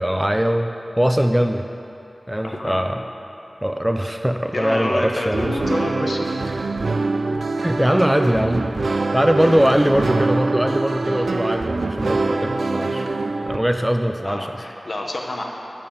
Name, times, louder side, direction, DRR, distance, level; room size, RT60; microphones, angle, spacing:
voice 1, 0.0-1.7 2.3-3.0 3.6-5.6 7.6-8.7 9.1-13.1 13.5-14.6, equal, 10° right, 6 dB, 0.4 m, -21 dB
voice 2, 2.4-2.8 4.5-6.3 9.4-9.5 14.2-15.4, left 1 dB, 55° left, 0 dB, 1.1 m, -28 dB
sound 1, 5.3-13.6, right 3 dB, 85° right, 0.4 m, -24 dB
10.5 x 4.3 x 7.6 m, 2.9 s
wide cardioid pair, 65°, 0 cm